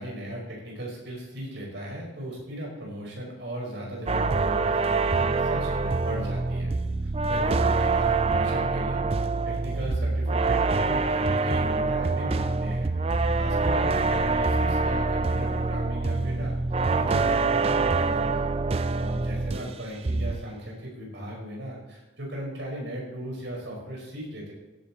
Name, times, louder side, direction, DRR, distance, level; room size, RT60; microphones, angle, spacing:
voice 1, 0.0-6.7 7.0-12.9 13.3-16.6 16.9-18.5 19.0-24.5, equal, 65° right, -2 dB, 5.3 m, -37 dB
sound 1, 4.1-19.8 20.0-20.5, right 3 dB, 30° right, 0.4 m, -25 dB
16.0 x 9.5 x 4.3 m, 1.1 s
head